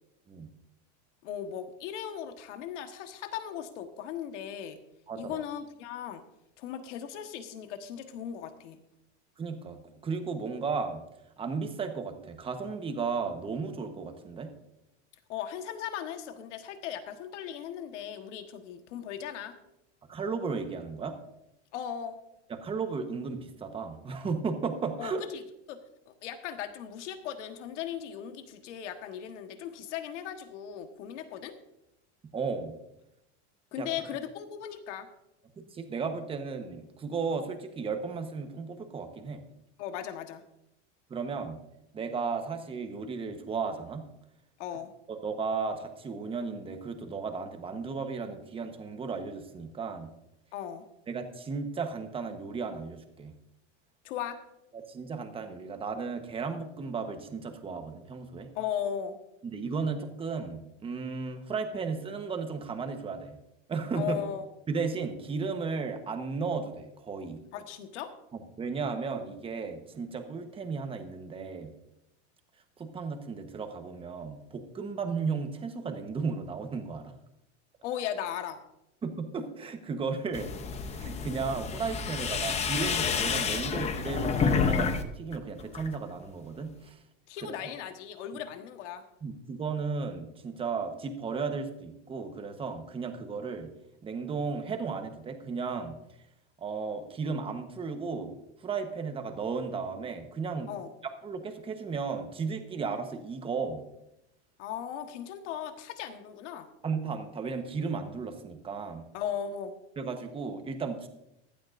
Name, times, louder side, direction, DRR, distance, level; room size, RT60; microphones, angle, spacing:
voice 1, 1.2-4.8 5.1-6.2 6.6-8.8 15.3-19.6 21.7-22.2 25.0-25.4 25.7-31.5 33.7-35.1 39.8-40.4 44.6-44.9 50.5-50.8 54.0-54.4 58.5-59.2 63.9-64.4 67.5-68.1 77.8-78.6 87.3-89.0 100.7-100.9 104.6-106.7 109.1-109.7, left 9 dB, 80° left, 7 dB, 1.4 m, -37 dB
voice 2, 5.1-5.4 9.4-9.8 10.0-11.0 11.4-14.5 20.1-21.1 22.5-25.2 32.3-32.8 33.8-33.9 35.6-39.4 41.1-41.6 41.9-44.0 45.1-50.1 51.1-53.3 54.7-58.5 59.4-63.4 63.7-64.2 64.7-67.4 68.6-71.7 72.8-77.1 79.0-80.5 80.9-87.0 87.4-87.7 89.2-93.7 94.0-95.9 96.6-98.3 98.6-100.8 101.2-103.8 106.8-109.0 110.0-111.1, right 5 dB, 15° right, 6 dB, 1.1 m, -34 dB
sound 1, 80.3-85.0 85.3-86.0, left 6 dB, 20° left, 0.7 m, -29 dB
15.5 x 12.5 x 2.6 m, 0.86 s
supercardioid pair, 155°, 35 cm